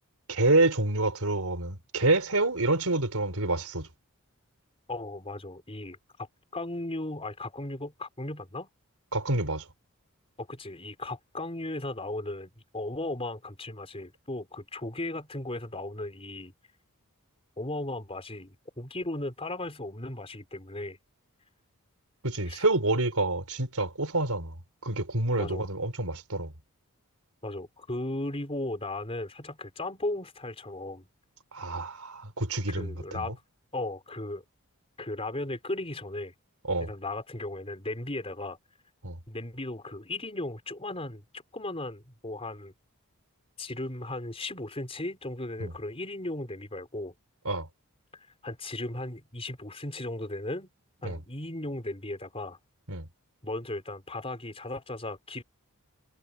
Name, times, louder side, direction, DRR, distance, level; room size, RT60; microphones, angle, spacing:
voice 1, 0.3-3.9 9.1-9.6 22.2-24.6 24.8-26.5 31.5-33.2 36.7-36.9 39.0-39.2 45.6-45.7 47.4-47.7 51.0-51.2 52.9-53.1, right 2 dB, 75° right, 4.5 m, -27 dB
voice 2, 4.9-6.3 6.5-8.7 10.4-16.5 17.6-21.0 22.4-22.6 25.3-25.7 27.4-31.1 32.8-33.4 33.7-34.4 35.0-36.3 36.8-38.6 39.3-41.2 41.5-42.7 43.6-47.1 48.4-50.7 51.0-52.6 53.4-55.4, left 2 dB, 25° left, 4.9 m, -36 dB
head